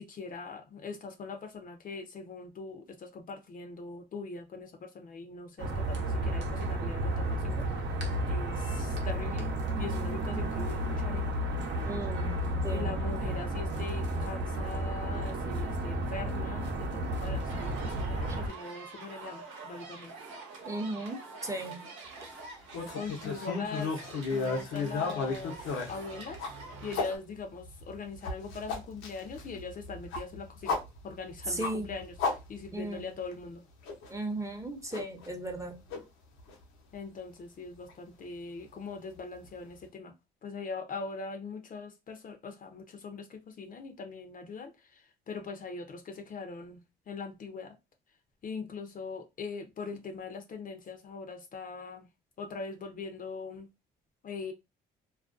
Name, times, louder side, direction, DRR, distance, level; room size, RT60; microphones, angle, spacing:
voice 1, 0.0-7.8 8.3-9.5 9.8-11.4 12.7-20.1 22.9-30.8 31.0-33.6 36.9-40.1 40.4-47.7 48.4-52.1 52.4-53.7 54.2-54.5, left 4 dB, 45° left, 0.5 m, -41 dB
sound 1, 5.6-18.5, right 1 dB, 60° right, 0.8 m, -32 dB
voice 2, 11.9-12.4 12.6-13.0 20.7-21.8 31.5-31.9 32.7-33.0 34.1-35.8, right 2 dB, 15° right, 0.7 m, -36 dB
sound 2, 17.5-27.2, right 3 dB, 85° right, 0.9 m, -46 dB
sound 3, 22.7-27.1 27.6-33.0 33.3-33.4 33.8-34.1 34.9-35.6 35.9-36.0 36.5-36.6 37.9-38.0, left 4 dB, 90° left, 0.7 m, -34 dB
2.4 x 2.1 x 2.4 m
supercardioid pair, 75°, 20 cm